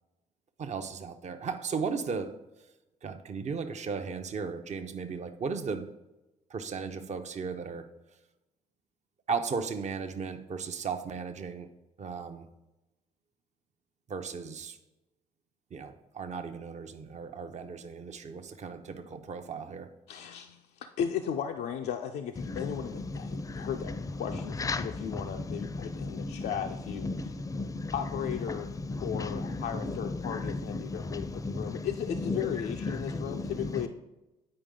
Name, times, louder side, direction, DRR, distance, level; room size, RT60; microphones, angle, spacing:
voice 1, 0.6-2.4 3.0-5.9 6.5-7.9 9.3-11.7 12.0-12.5 14.1-14.8 15.7-19.9, right 5 dB, 40° right, 0.7 m, -36 dB
voice 2, 20.1-27.3 27.9-28.7 29.0-33.9, left 9 dB, 60° left, 0.5 m, -36 dB
voice 3, 22.5-23.7 24.6-26.5 27.0-27.9 28.5-32.5 32.8-33.9, left 3 dB, 20° left, 0.6 m, -35 dB
8.7 x 4.8 x 3.7 m
hypercardioid pair, 50°, 19 cm